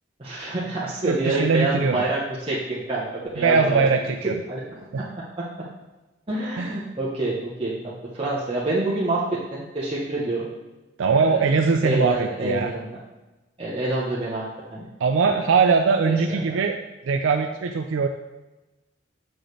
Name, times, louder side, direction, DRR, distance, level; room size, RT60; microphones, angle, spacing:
voice 1, 0.2-3.1 3.3-3.8 4.2-4.6 5.0-5.5 6.3-10.5 11.2-11.5 11.8-13.0 13.6-14.4 14.7-14.9 15.3-15.4 16.0-16.6, right 2 dB, 30° right, -7 dB, 0.9 m, -27 dB
voice 2, 1.0-2.0 3.4-4.4 4.9-5.0 6.6-6.8 11.0-12.7 15.0-16.8 17.1-18.1, right 5 dB, 90° right, 4 dB, 0.4 m, -21 dB
6.6 x 6.3 x 3.2 m, 1.1 s
head